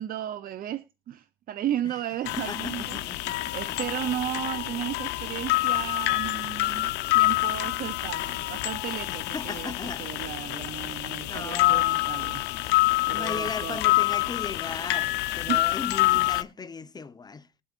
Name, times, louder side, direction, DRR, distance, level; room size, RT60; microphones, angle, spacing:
voice 1, 0.0-12.4 13.1-13.8 15.5-15.7, right 11 dB, 60° right, 0.6 m, -34 dB
sound 1, 2.2-16.4, left 19 dB, 90° left, 0.8 m, -27 dB
voice 2, 2.3-3.8 9.1-10.1 10.6-11.9 13.1-17.6, left 4 dB, 25° left, 0.9 m, -37 dB
20.5 x 8.5 x 2.5 m
cardioid pair, 110°, 17 cm